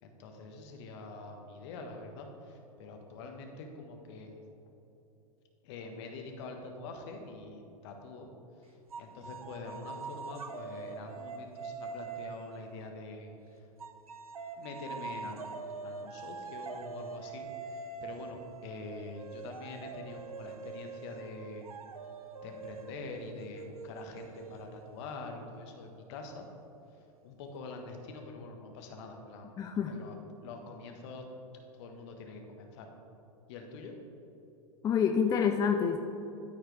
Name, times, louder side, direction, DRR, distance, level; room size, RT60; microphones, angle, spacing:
voice 1, 0.0-4.4 5.6-8.3 8.7-13.3 14.6-21.6 22.4-26.5 27.2-29.5 29.9-31.2 31.7-32.9 33.5-33.9, left 3 dB, 55° left, 3 dB, 1.2 m, -45 dB
sound 1, 8.9-13.3 13.8-25.2, right 5 dB, 90° right, 0.5 m, -44 dB
voice 2, 29.6-30.0 34.8-36.0, left 7 dB, 20° left, 4 dB, 0.4 m, -27 dB
13.0 x 4.7 x 3.3 m, 2.9 s
hypercardioid pair, 100°, 18 cm